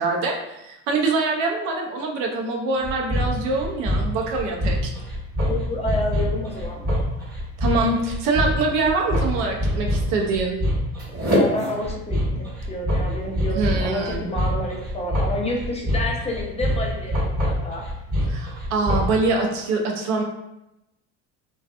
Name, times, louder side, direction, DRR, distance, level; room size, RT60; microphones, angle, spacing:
voice 1, 0.0-4.9 7.6-10.6 13.6-14.3 18.3-20.2, right 3 dB, 90° right, 1 dB, 0.6 m, -24 dB
sound 1, 2.8-19.2, equal, 25° right, 1.3 m, -25 dB
voice 2, 5.5-6.8 11.3-17.9, left 1 dB, 20° left, -1 dB, 0.6 m, -29 dB
2.6 x 2.3 x 2.4 m, 0.90 s
supercardioid pair, 85°, 34 cm